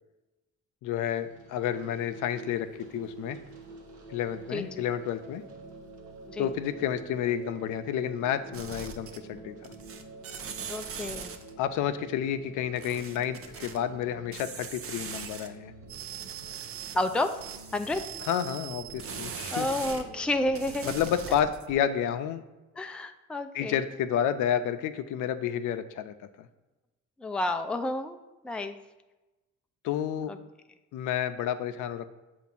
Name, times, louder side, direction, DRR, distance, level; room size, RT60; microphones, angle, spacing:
voice 1, 0.8-3.4 4.1-5.4 6.4-9.6 11.6-15.7 18.3-19.7 20.9-22.4 23.5-26.5 29.8-30.3 30.9-32.1, left 9 dB, 85° left, 10 dB, 0.5 m, -30 dB
sound 1, 1.1-20.9, right 2 dB, 80° right, 1.1 m, -48 dB
voice 2, 4.5-4.8 6.3-6.5 10.7-11.3 16.9-17.4 17.7-18.0 19.5-20.9 22.8-23.8 27.2-28.8 30.3-30.4, left 1 dB, 5° left, 7 dB, 0.3 m, -30 dB
sound 2, 8.5-9.4 9.6-11.5 12.8-13.8 14.3-15.5 15.8-20.0 20.5-21.7, right 7 dB, 50° right, 0.6 m, -40 dB
7.0 x 2.5 x 5.3 m, 1.1 s
cardioid pair, 90°, 30 cm